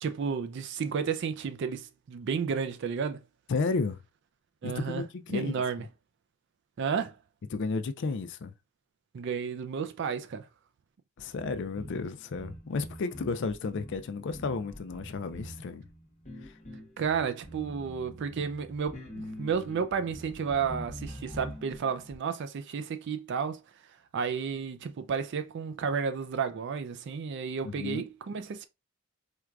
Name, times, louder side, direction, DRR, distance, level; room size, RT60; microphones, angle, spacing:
voice 1, 0.0-3.2 4.6-5.0 5.3-5.8 6.8-7.2 9.1-10.5 17.0-23.6 24.1-28.7, right 6 dB, 55° right, 0.4 m, -32 dB
voice 2, 3.5-4.0 4.6-5.5 7.5-8.5 11.2-15.8 16.4-16.5 27.6-28.0, left 4 dB, 55° left, 0.4 m, -32 dB
sound 1, 11.2-22.2, equal, 35° left, 1.0 m, -45 dB
4.5 x 2.3 x 2.3 m
head